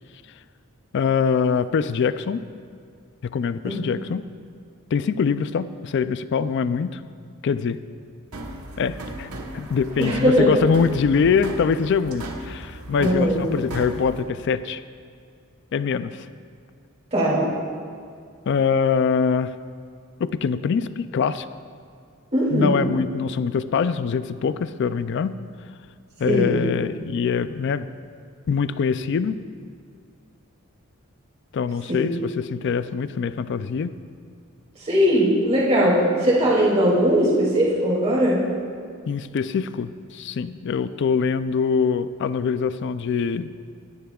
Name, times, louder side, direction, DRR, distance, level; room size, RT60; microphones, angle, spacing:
voice 1, 0.9-2.4 3.2-4.2 4.9-7.0 7.4-7.8 8.8-9.3 9.5-14.8 15.7-16.3 18.5-19.5 20.2-21.4 22.5-25.4 26.2-27.9 28.5-29.4 31.5-33.9 39.1-43.5, left 6 dB, 55° left, 13 dB, 0.3 m, -23 dB
sound 1, 8.3-14.2, right 1 dB, 85° right, 1.2 m, -36 dB
voice 2, 10.0-10.6 13.0-13.4 17.1-17.5 22.3-22.8 26.3-26.6 31.9-32.0 34.8-38.4, equal, 30° right, -7 dB, 2.6 m, -19 dB
19.5 x 10.5 x 2.3 m, 2.3 s
head